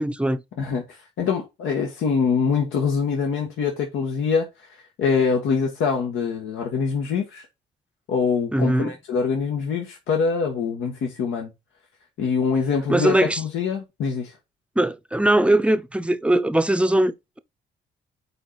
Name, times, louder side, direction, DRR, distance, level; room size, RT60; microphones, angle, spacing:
voice 1, 0.0-0.4 8.5-8.9 12.9-13.4 14.8-17.4, right 1 dB, 5° right, 0.7 m, -20 dB
voice 2, 0.6-7.5 8.1-11.5 12.2-14.3, left 5 dB, 80° left, 1.6 m, -24 dB
7.8 x 4.6 x 4.1 m
cardioid pair, 90°, 20 cm